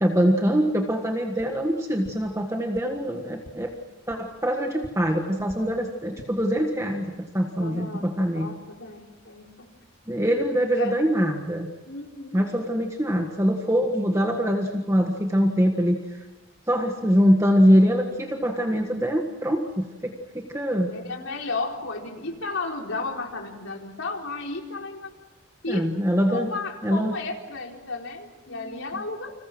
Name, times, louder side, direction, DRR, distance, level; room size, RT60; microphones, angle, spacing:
voice 1, 0.0-3.7 4.1-8.5 10.1-11.7 12.3-16.2 16.7-20.9 25.7-26.5 26.8-27.1 28.9-29.0, equal, 15° right, 2 dB, 1.6 m, -23 dB
sound 1, 1.3-1.5 2.0-2.1 2.7-2.8 3.4-3.5 4.1-4.2 4.8-4.9 5.4-5.6 6.0-6.3, equal, 45° left, 2.4 m, -44 dB
voice 2, 7.6-9.7 10.8-10.9 11.9-12.5 20.9-25.1 25.6-25.9 26.3-29.3, left 3 dB, 75° left, 1 dB, 4.2 m, -33 dB
30.0 x 27.0 x 6.2 m, 1.2 s
head